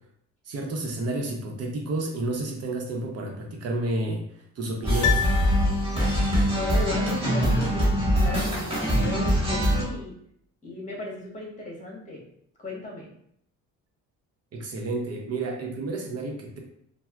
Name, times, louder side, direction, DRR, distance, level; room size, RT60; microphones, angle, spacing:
voice 1, 0.5-4.2 4.6-5.3 14.5-16.6, right 2 dB, 55° right, 1 dB, 0.7 m, -30 dB
sound 1, 4.8-9.8, equal, 20° right, 1.5 m, -23 dB
Piano, 5.0-6.3 6.5-6.6, left 10 dB, 65° left, 0.5 m, -29 dB
voice 2, 6.5-7.9 8.2-10.1 10.6-12.2 12.6-13.1, left 2 dB, 25° left, -3 dB, 1.3 m, -35 dB
4.2 x 2.0 x 2.4 m, 0.70 s
cardioid pair, 90°, 30 cm